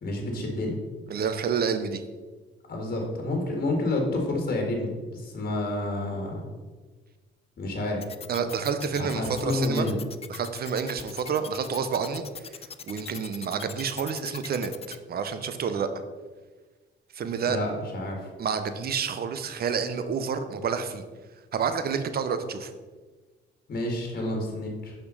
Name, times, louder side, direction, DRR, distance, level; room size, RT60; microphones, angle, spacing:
voice 1, 0.0-0.8 2.7-6.4 7.6-8.0 8.9-10.0 17.4-18.3 23.7-24.9, left 2 dB, 50° left, 1 dB, 1.7 m, -29 dB
voice 2, 1.1-2.0 8.3-9.9 10.3-12.6 12.9-15.9 17.1-17.6 18.4-21.0 21.5-22.7, right 6 dB, 50° right, 9 dB, 0.7 m, -29 dB
sound 1, 8.0-15.0, left 7 dB, 30° left, 0.4 m, -40 dB
5.6 x 4.4 x 5.4 m, 1.3 s
cardioid pair, 90°, 20 cm